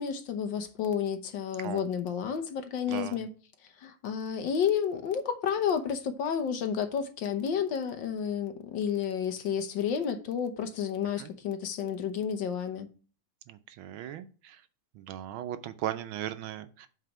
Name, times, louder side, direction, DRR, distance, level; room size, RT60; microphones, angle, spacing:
voice 1, 0.0-3.3 3.8-12.9, left 7 dB, 65° left, 1.4 m, -31 dB
voice 2, 2.9-3.3 11.2-11.3 13.5-14.6 14.9-16.9, right 12 dB, 75° right, 1.3 m, -38 dB
8.2 x 4.2 x 5.7 m
omnidirectional pair, 2.4 m